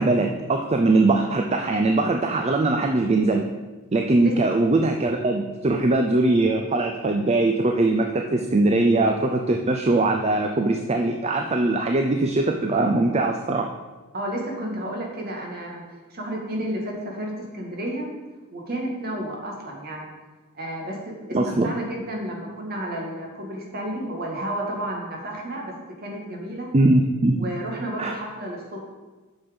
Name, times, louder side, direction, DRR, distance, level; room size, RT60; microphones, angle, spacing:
voice 1, 0.0-3.5 3.9-13.7 21.3-21.7 26.7-27.4 28.0-28.1, right 2 dB, 30° right, 4 dB, 0.5 m, -21 dB
voice 2, 14.1-15.8 16.1-18.1 18.5-20.1 20.5-21.0 21.2-25.7 26.0-26.7 27.3-28.8, right 1 dB, 50° right, -1 dB, 2.0 m, -31 dB
8.7 x 6.3 x 5.3 m, 1.3 s
head